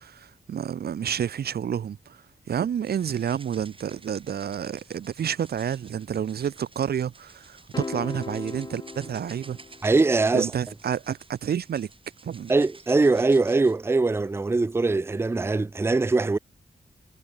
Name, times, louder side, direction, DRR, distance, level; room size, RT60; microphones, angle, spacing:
voice 1, 0.0-2.2 2.5-9.6 10.3-11.9 12.2-12.5, right 8 dB, 80° right, 0.6 m, -29 dB
sound 1, 2.8-13.8, right 3 dB, 35° right, 2.1 m, -53 dB
C - Piano Chord, 7.7-10.2, left 3 dB, 25° left, 0.8 m, -38 dB
voice 2, 9.8-10.5 12.5-16.4, right 3 dB, 15° right, 0.4 m, -22 dB
wide cardioid pair, 100°, 16 cm